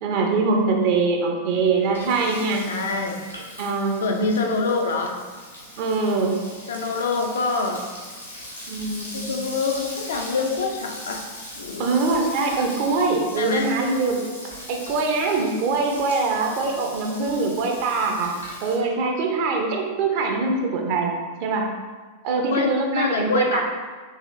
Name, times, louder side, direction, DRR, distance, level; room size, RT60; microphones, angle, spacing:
voice 1, 0.0-2.6 3.6-4.5 5.8-6.4 8.7-9.3 11.8-14.2 14.7-18.3 18.6-21.1 21.4-21.7 22.2-23.6, right 3 dB, 45° right, 1 dB, 0.6 m, -23 dB
Frying (food), 1.5-18.7, left 1 dB, 85° left, 0.9 m, -40 dB
voice 2, 2.7-3.2 4.0-5.2 6.7-7.9 9.1-11.2 11.5-11.9 13.4-13.7 22.5-23.6, left 4 dB, 65° left, 3 dB, 0.4 m, -25 dB
4.1 x 3.0 x 2.5 m, 1.4 s
figure-of-eight pair, 90°, 0 cm